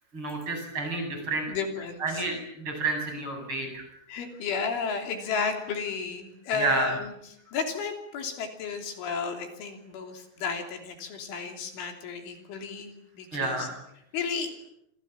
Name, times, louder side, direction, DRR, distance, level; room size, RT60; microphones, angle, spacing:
voice 1, 0.1-1.5 2.0-3.8 6.6-6.9 13.3-13.8, right 3 dB, 25° right, 4 dB, 8.7 m, -30 dB
voice 2, 1.5-2.3 4.1-7.1 7.5-13.7 14.1-14.7, left 5 dB, 70° left, 4 dB, 5.5 m, -33 dB
28.0 x 27.0 x 7.4 m, 0.78 s
omnidirectional pair, 5.8 m